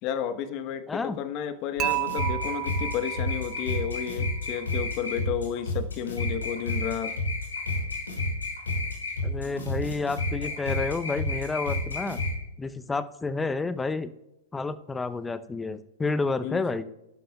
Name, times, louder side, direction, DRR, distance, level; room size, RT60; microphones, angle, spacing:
voice 1, 0.0-7.2 16.4-16.6, left 8 dB, 45° left, 10 dB, 1.0 m, -32 dB
voice 2, 0.9-1.2 9.2-12.2 12.6-14.1 14.5-16.8, left 3 dB, 10° left, 12 dB, 0.7 m, -30 dB
sound 1, 1.8-12.3, left 2 dB, 85° left, 5.2 m, -30 dB
Dishes pots and pans / Chink clink, 1.8-3.9, right 19 dB, 35° right, 0.4 m, -32 dB
20.0 x 11.5 x 2.3 m, 0.92 s
hypercardioid pair, 105°, 0 cm